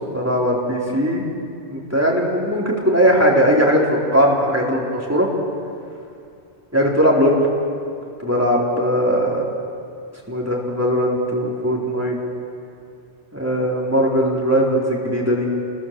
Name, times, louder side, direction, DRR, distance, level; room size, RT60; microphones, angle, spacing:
voice 1, 0.1-1.3 1.7-5.3 6.7-7.4 8.2-9.4 10.3-12.2 13.3-15.5, equal, 15° right, -3 dB, 4.2 m, -19 dB
29.0 x 21.5 x 7.7 m, 2.5 s
omnidirectional pair, 1.1 m